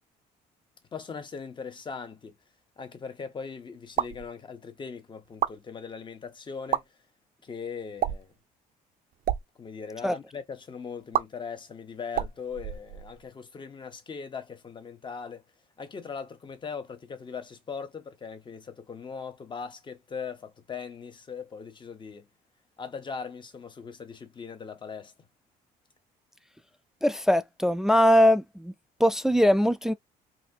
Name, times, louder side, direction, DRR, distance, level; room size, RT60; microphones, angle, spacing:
voice 1, 0.9-2.4 2.8-6.8 7.4-8.3 9.6-15.4 15.8-22.3 22.8-25.1, left 5 dB, 30° left, 0.9 m, -40 dB
sound 1, 3.9-4.3 5.2-5.6 6.6-6.8 8.0-8.3 9.1-9.4 11.1-11.2 12.1-13.3, right 11 dB, 55° right, 0.6 m, -29 dB
voice 2, 27.0-28.7 29.0-29.9, equal, 5° right, 0.3 m, -21 dB
4.0 x 2.7 x 2.8 m
cardioid pair, 110°, 17 cm